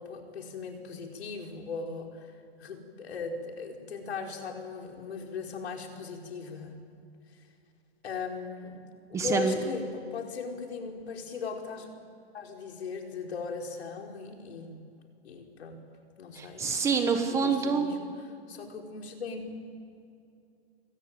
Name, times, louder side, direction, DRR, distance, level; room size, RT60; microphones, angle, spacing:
voice 1, 0.0-2.3 2.6-6.8 7.3-7.4 8.0-8.8 9.1-11.9 12.3-14.8 15.2-15.8 16.2-16.9 17.4-18.1 18.5-19.6, left 4 dB, 80° left, 2 dB, 5.5 m, -38 dB
voice 2, 9.1-9.5 16.3-17.9, right 5 dB, 10° right, 5 dB, 1.3 m, -27 dB
27.0 x 24.0 x 8.9 m, 2.5 s
hypercardioid pair, 175°, 32 cm